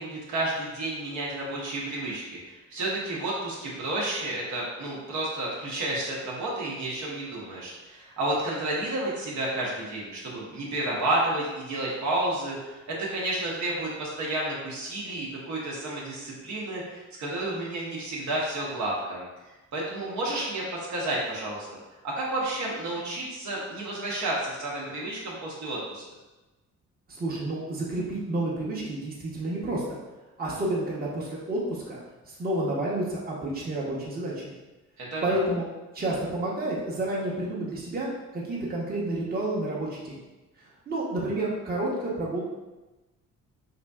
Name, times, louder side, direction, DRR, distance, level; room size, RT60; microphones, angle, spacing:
voice 1, 0.0-26.0 35.0-35.4, right 1 dB, 70° right, -4 dB, 1.0 m, -31 dB
voice 2, 27.1-30.0 30.4-32.0 32.3-34.5 35.2-35.6 35.9-40.2 40.9-42.4, right 1 dB, 30° right, -5 dB, 0.9 m, -30 dB
3.7 x 2.7 x 2.3 m, 1.1 s
cardioid pair, 90°, 30 cm